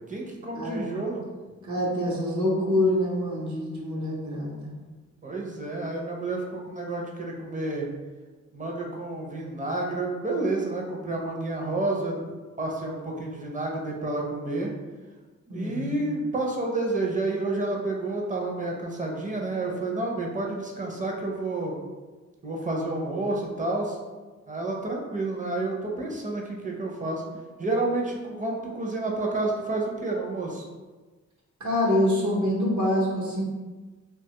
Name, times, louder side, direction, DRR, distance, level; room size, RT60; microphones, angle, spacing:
voice 1, 0.1-1.2 5.2-7.9 8.5-12.3 12.6-14.7 15.5-21.7 22.4-24.0 24.5-27.2 27.6-30.6, right 2 dB, 25° right, -1 dB, 0.5 m, -30 dB
voice 2, 1.7-4.7 15.5-16.1 31.6-33.4, left 1 dB, 70° right, -3 dB, 0.8 m, -26 dB
2.8 x 2.3 x 2.8 m, 1.3 s
wide cardioid pair, 80°, 30 cm